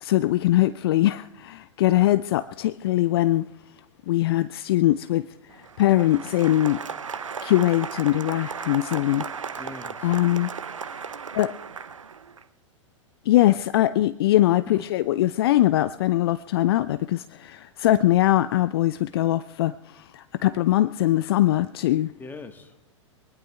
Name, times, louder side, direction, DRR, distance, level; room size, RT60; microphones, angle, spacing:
voice 1, 0.0-3.5 4.1-5.3 5.8-6.8 7.4-9.3 10.0-10.5 11.0-11.5 13.3-22.1, left 14 dB, 50° left, 0.4 m, -22 dB
Applause, 5.5-12.4, right 6 dB, 75° right, 0.7 m, -36 dB
voice 2, 9.6-10.2 14.7-14.9 22.2-22.8, left 3 dB, 10° left, 1.3 m, -42 dB
24.0 x 19.5 x 2.3 m
figure-of-eight pair, 100°, 16 cm